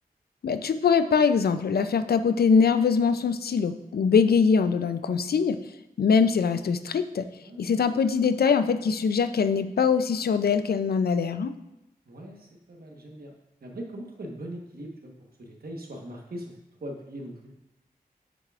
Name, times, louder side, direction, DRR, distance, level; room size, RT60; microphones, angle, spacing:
voice 1, 0.4-5.6 6.0-7.3 7.6-11.5, left 5 dB, 80° left, 11 dB, 0.4 m, -23 dB
voice 2, 7.4-7.8 12.1-13.3 13.6-15.1 15.4-17.5, right 1 dB, 75° right, 0 dB, 1.2 m, -40 dB
7.5 x 6.7 x 2.4 m, 0.92 s
cardioid pair, 55°, 16 cm